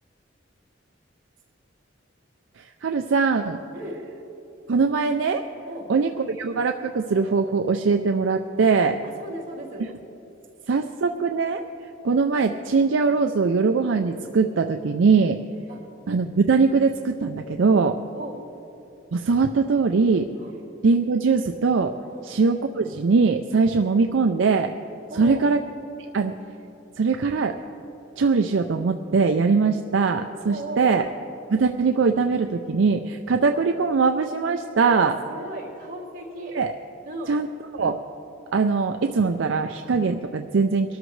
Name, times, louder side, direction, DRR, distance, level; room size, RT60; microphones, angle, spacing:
voice 1, 2.6-3.6 4.7-5.4 5.9-9.0 10.7-11.6 12.0-15.4 16.1-18.0 19.1-20.3 20.8-21.9 22.2-24.7 25.1-25.6 26.1-26.3 27.0-27.6 28.2-31.0 31.5-35.2 36.5-36.7 37.3-37.5 37.7-38.0 38.5-41.0, right 4 dB, 75° right, 5 dB, 0.5 m, -21 dB
voice 2, 9.0-9.9 15.7-15.8 18.1-18.4 20.4-20.5 22.1-22.3 25.1-25.5 30.4-31.0 34.9-36.6 37.0-37.4, right 1 dB, 45° right, -4 dB, 3.2 m, -36 dB
23.0 x 13.0 x 3.2 m, 3.0 s
head